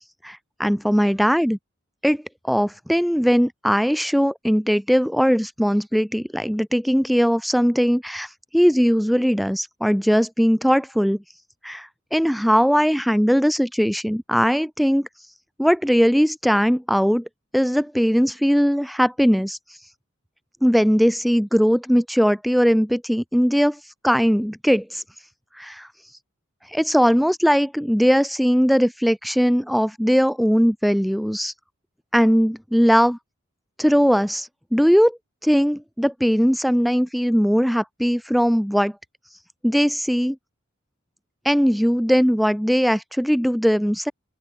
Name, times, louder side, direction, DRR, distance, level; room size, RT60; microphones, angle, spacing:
voice 1, 0.2-1.6 2.0-11.2 11.6-15.1 15.6-17.3 17.5-19.6 20.6-23.8 24.0-25.0 25.6-25.9 26.7-31.5 32.1-33.2 33.8-38.9 39.6-40.4 41.4-44.1, equal, ahead, 6.6 m, -19 dB
open air
head